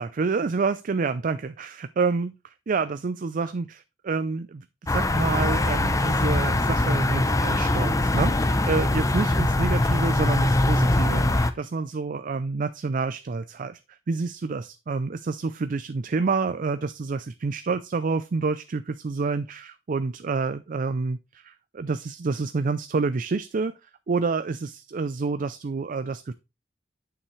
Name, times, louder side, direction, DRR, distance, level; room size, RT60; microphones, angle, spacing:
voice 1, 0.0-3.8 4.0-26.3, right 4 dB, 45° right, 12 dB, 0.4 m, -28 dB
sound 1, 4.9-11.5, left 1 dB, 20° left, 0.6 m, -22 dB
8.8 x 7.0 x 3.2 m, 0.25 s
head